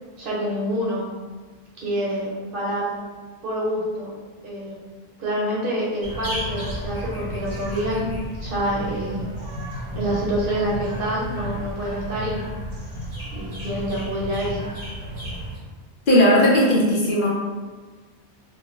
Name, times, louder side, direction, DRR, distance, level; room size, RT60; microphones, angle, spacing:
voice 1, 0.2-1.2 1.8-2.9 3.4-4.1 4.4-4.8 5.2-8.1 8.4-9.2 9.9-12.5 13.3-14.7, equal, 65° right, -5 dB, 0.9 m, -27 dB
sound 1, 6.0-15.6, equal, 30° right, 0.8 m, -32 dB
voice 2, 16.1-17.3, equal, 60° left, -4 dB, 0.7 m, -17 dB
2.4 x 2.2 x 3.0 m, 1.4 s
omnidirectional pair, 1.0 m